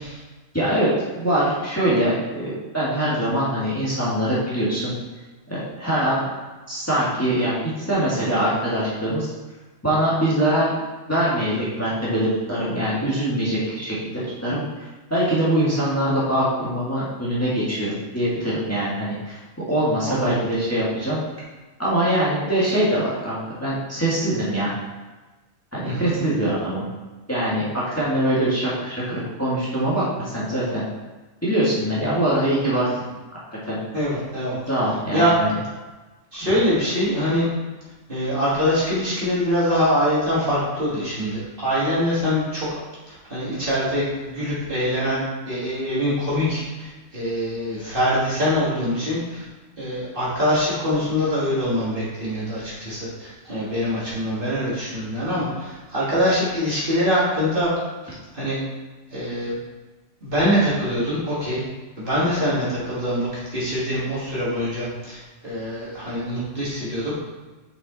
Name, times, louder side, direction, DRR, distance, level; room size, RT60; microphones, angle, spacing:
voice 1, 0.5-0.9 1.2-4.9 5.5-6.2 6.7-9.3 9.8-10.7 11.1-21.2 21.8-24.7 25.7-26.9 27.3-30.9 31.4-33.1 33.6-33.8 34.7-35.6, right 1 dB, 10° left, -8 dB, 1.8 m, -23 dB
voice 2, 25.8-26.2 33.9-34.6 35.1-35.3 36.3-37.5 38.1-42.8 43.1-49.5 49.8-57.7 58.0-58.6 59.1-59.6 60.2-61.6 62.0-67.1, equal, 45° right, -9 dB, 2.6 m, -24 dB
6.3 x 5.6 x 4.0 m, 1.2 s
omnidirectional pair, 1.3 m